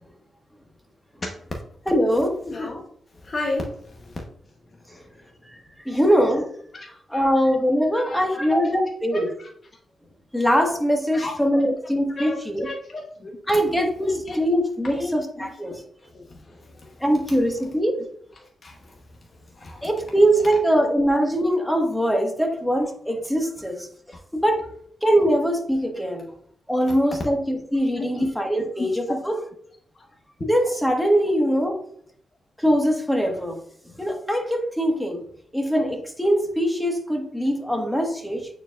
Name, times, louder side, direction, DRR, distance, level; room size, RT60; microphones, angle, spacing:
voice 1, 1.9-2.3 5.8-6.5 7.1-9.3 10.3-12.7 13.5-15.7 17.0-18.0 19.8-23.9 24.3-24.6 25.0-26.3 26.7-29.4 30.4-31.8 32.6-33.6 34.0-35.2 35.5-38.5, equal, 5° left, 2 dB, 1.4 m, -22 dB
voice 2, 2.4-2.8 3.1-4.2 4.9-5.3 5.9-6.0 6.7-7.3 7.9-8.6 9.1-9.5 11.1-11.3 12.2-12.4 12.6-13.4 14.0-14.4 14.8-17.0 17.6-18.0 18.4-19.0 19.5-19.9 21.6-21.7 26.9-27.0 28.0-28.3 28.5-28.9, left 2 dB, 40° left, 0 dB, 1.0 m, -35 dB
8.7 x 4.6 x 2.4 m, 0.63 s
cardioid pair, 85°, 0 cm